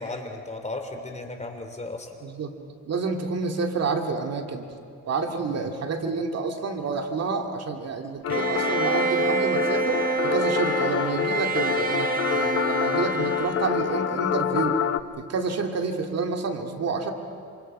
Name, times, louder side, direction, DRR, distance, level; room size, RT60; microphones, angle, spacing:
voice 1, 0.0-2.1, left 2 dB, 25° left, 5 dB, 3.3 m, -35 dB
voice 2, 2.2-2.5 2.9-4.8 5.1-14.8 15.2-17.1, right 4 dB, 55° right, 4 dB, 2.3 m, -29 dB
sound 1, 8.2-15.0, left 9 dB, 50° left, 0.9 m, -27 dB
Bowed string instrument, 8.3-14.4, right 5 dB, 30° right, 1.7 m, -28 dB
27.5 x 26.5 x 5.5 m, 2.4 s
cardioid pair, 90°, 30 cm